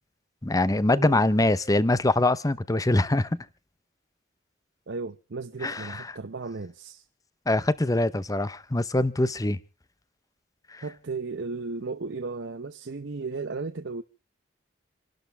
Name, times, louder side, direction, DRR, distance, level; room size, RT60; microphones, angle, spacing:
voice 1, 0.4-3.5 5.6-6.0 7.5-9.6 10.7-10.8, left 2 dB, 20° left, 0.7 m, -23 dB
voice 2, 4.9-7.0 10.8-14.0, right 4 dB, 70° right, 0.7 m, -35 dB
28.5 x 12.0 x 3.4 m
head